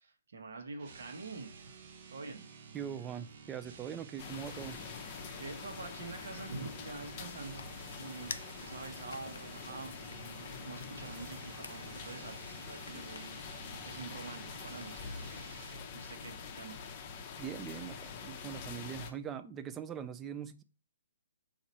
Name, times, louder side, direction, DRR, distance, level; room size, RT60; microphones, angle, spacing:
voice 1, 0.0-1.7 2.1-2.5 5.4-16.8, right 3 dB, 70° right, 1.1 m, -46 dB
sound 1, 0.8-15.9, right 5 dB, 50° right, 0.7 m, -52 dB
voice 2, 2.7-4.8 17.4-20.6, right 8 dB, 15° right, 0.3 m, -42 dB
sound 2, 4.2-19.1, left 6 dB, 35° left, 0.6 m, -45 dB
sound 3, 6.5-15.2, left 5 dB, 75° left, 0.4 m, -53 dB
4.1 x 2.6 x 4.1 m
hypercardioid pair, 140°, 0 cm